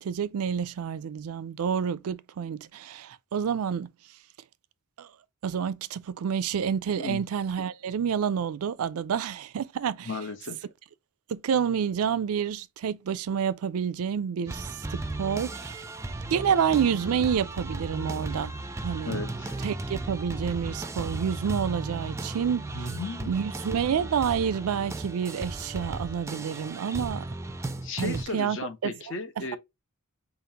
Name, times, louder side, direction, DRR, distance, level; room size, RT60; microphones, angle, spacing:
voice 1, 0.0-3.9 5.0-5.1 5.4-10.1 11.3-15.8 16.3-18.6 18.8-19.2 19.6-22.7 23.3-27.2 28.0-28.6 28.8-28.9, right 7 dB, 85° right, 0.4 m, -28 dB
voice 2, 7.0-7.3 10.0-10.6 19.0-19.6 22.7-23.3 27.8-29.6, left 3 dB, 60° left, 0.8 m, -35 dB
sound 1, 14.5-28.3, right 2 dB, 15° right, 0.4 m, -35 dB
5.1 x 2.4 x 2.8 m
head